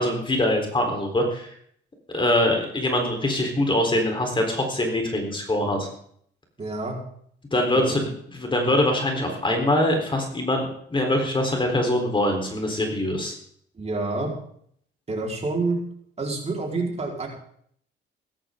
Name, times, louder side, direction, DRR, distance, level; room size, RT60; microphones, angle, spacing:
voice 1, 0.0-1.5 2.1-5.9 7.5-13.3, left 1 dB, 25° left, 2 dB, 4.0 m, -23 dB
voice 2, 6.6-7.0 7.8-8.0 13.8-14.3 15.1-15.8 16.2-17.3, right 3 dB, 35° right, -1 dB, 4.6 m, -27 dB
16.5 x 13.5 x 3.8 m, 0.64 s
cardioid pair, 90°, 20 cm